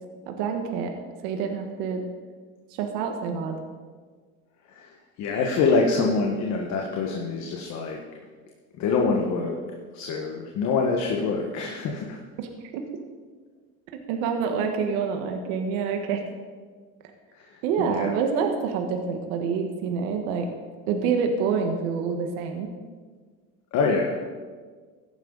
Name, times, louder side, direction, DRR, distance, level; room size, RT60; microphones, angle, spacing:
voice 1, 0.3-0.9 1.2-2.0 2.7-3.6 12.4-12.5 14.1-16.2 17.6-20.4 20.9-22.7, right 6 dB, 80° right, 4 dB, 1.5 m, -27 dB
voice 2, 4.6-8.0 8.8-9.6 9.9-12.2 17.3-18.2 23.7-24.3, left 4 dB, 55° left, 1 dB, 1.6 m, -25 dB
14.5 x 11.0 x 4.0 m, 1.5 s
cardioid pair, 130°, 33 cm